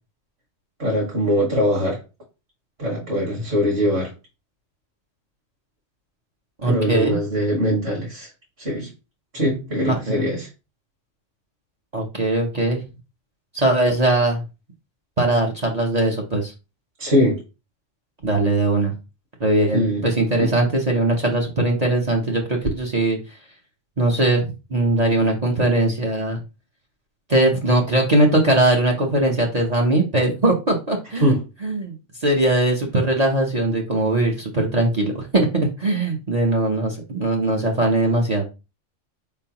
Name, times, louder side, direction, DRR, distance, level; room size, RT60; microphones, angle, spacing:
voice 1, 0.8-2.0 2.8-4.1 6.7-8.3 8.6-8.9 9.3-10.5 17.0-17.4 19.7-20.1 20.4-20.5 31.1-31.4, equal, 55° right, 2.0 m, -22 dB
voice 2, 6.6-7.2 9.9-10.2 11.9-12.8 13.5-14.4 15.2-16.5 18.2-18.9 19.4-23.2 24.0-26.4 27.3-31.3 31.6-31.9 32.2-38.4, right 2 dB, 40° right, 0.8 m, -20 dB
4.6 x 3.8 x 2.9 m
omnidirectional pair, 1.2 m